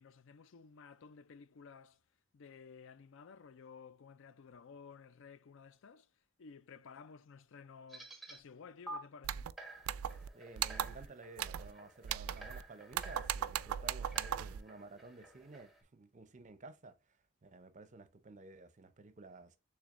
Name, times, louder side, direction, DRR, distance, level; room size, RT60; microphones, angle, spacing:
voice 1, 0.0-2.0 2.3-6.1 6.4-9.5, left 5 dB, 65° left, 0.4 m, -55 dB
sound 1, 7.9-8.4 8.9-9.0 9.6-15.8, right 2 dB, ahead, 0.9 m, -52 dB
sound 2, 9.2-9.5 9.9-10.3 10.6-11.1 11.4-11.7 12.0-12.6 12.9-14.6, right 10 dB, 80° right, 0.3 m, -38 dB
voice 2, 10.3-19.6, right 3 dB, 35° right, 0.6 m, -53 dB
6.2 x 3.4 x 2.5 m
head